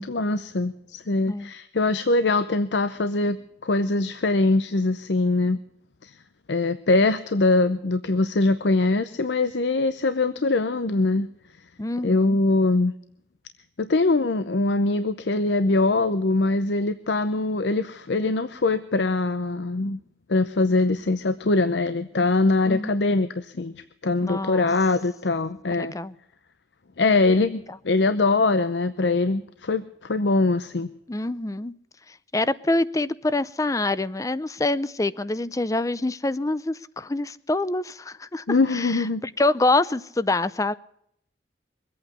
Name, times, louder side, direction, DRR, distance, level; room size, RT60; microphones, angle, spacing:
voice 1, 0.0-3.4 3.6-5.6 6.0-6.1 6.5-11.3 12.0-12.9 13.8-20.0 20.3-23.7 24.0-25.9 27.0-30.9 38.5-39.2, left 3 dB, 80° left, 0.7 m, -22 dB
voice 2, 11.8-12.4 22.7-23.0 24.2-24.7 25.8-26.1 31.1-31.7 32.3-40.7, left 2 dB, 20° left, 0.5 m, -26 dB
23.0 x 8.7 x 6.7 m
head